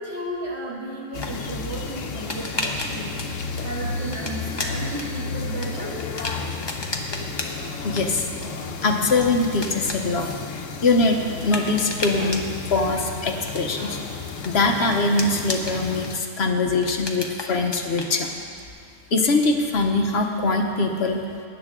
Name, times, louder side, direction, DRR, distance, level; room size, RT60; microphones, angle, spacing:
voice 1, 0.0-3.2 3.6-6.0, right 1 dB, 60° right, -6 dB, 2.8 m, -34 dB
sound 1, 1.1-16.2, left 4 dB, 85° left, 1.2 m, -33 dB
sound 2, 1.1-18.7, left 2 dB, 25° left, 0.9 m, -35 dB
voice 2, 7.8-8.3 8.8-10.3 10.8-14.0 14.4-18.3 19.1-21.2, left 3 dB, 60° left, 3 dB, 1.1 m, -22 dB
19.5 x 9.7 x 3.6 m, 2.2 s
omnidirectional pair, 1.3 m